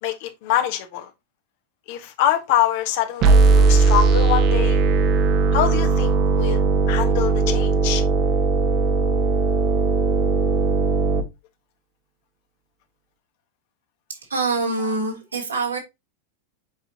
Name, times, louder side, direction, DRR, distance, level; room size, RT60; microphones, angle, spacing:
voice 1, 0.0-1.1 1.9-4.8 5.5-6.6 6.9-8.0 14.8-15.0, left 11 dB, 50° left, 1.5 m, -24 dB
sound 1, 3.2-11.2, right 4 dB, 40° right, 1.4 m, -18 dB
voice 2, 14.3-15.8, right 3 dB, 75° right, 3.3 m, -24 dB
8.1 x 5.8 x 2.9 m
figure-of-eight pair, 90°, 0 cm